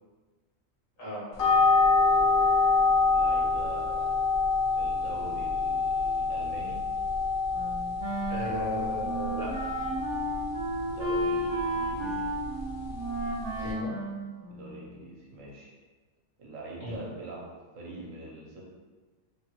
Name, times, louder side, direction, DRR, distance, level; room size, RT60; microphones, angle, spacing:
sound 1, 1.4-13.7, left 4 dB, 50° left, 0.7 m, -27 dB
voice 1, 2.1-2.5 3.1-4.2 4.8-6.8 10.9-12.3 14.5-15.7 16.4-17.5 17.7-18.7, right 2 dB, 70° right, -3 dB, 1.1 m, -43 dB
Wind instrument woodwind instrument, 7.5-15.0, right 1 dB, 55° right, 0.4 m, -33 dB
voice 2, 8.3-9.5 13.6-13.9 16.8-17.0, equal, 70° left, -8 dB, 1.6 m, -35 dB
3.4 x 2.2 x 2.9 m, 1.3 s
omnidirectional pair, 1.4 m